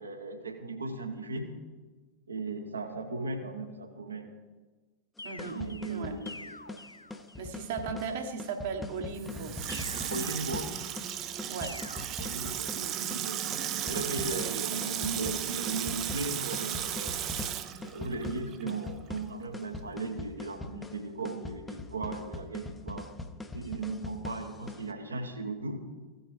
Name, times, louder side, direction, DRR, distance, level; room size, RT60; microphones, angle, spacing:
voice 1, 0.0-1.5 2.3-4.3 5.4-6.5 10.1-10.8 12.2-13.5 13.8-17.5 17.8-23.1 23.5-25.8, right 3 dB, 75° right, 5 dB, 1.2 m, -37 dB
sound 1, 5.2-7.6 9.7-11.1 11.6-12.1, left 2 dB, 85° left, 0.4 m, -47 dB
sound 2, 5.2-24.9, left 2 dB, 10° left, 0.7 m, -42 dB
voice 2, 5.2-5.6 5.9-6.2 7.4-9.8 11.5-11.8 12.7-13.0 14.3-14.9, right 5 dB, 55° right, 5 dB, 1.2 m, -37 dB
Water tap faucet / Sink (filling or washing), 9.1-18.9 19.2-19.3, right 10 dB, 35° right, 0.5 m, -35 dB
16.0 x 7.0 x 3.3 m, 1.3 s
figure-of-eight pair, 90°, 0 cm